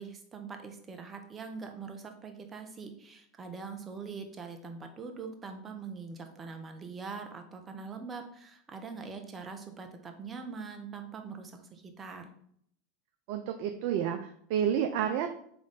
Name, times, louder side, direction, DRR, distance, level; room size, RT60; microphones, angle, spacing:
voice 1, 0.0-12.3, right 5 dB, 25° right, 5 dB, 0.8 m, -43 dB
voice 2, 13.3-15.3, right 9 dB, 60° right, 5 dB, 0.4 m, -30 dB
3.9 x 3.7 x 3.5 m, 0.65 s
hypercardioid pair, 90°, 0 cm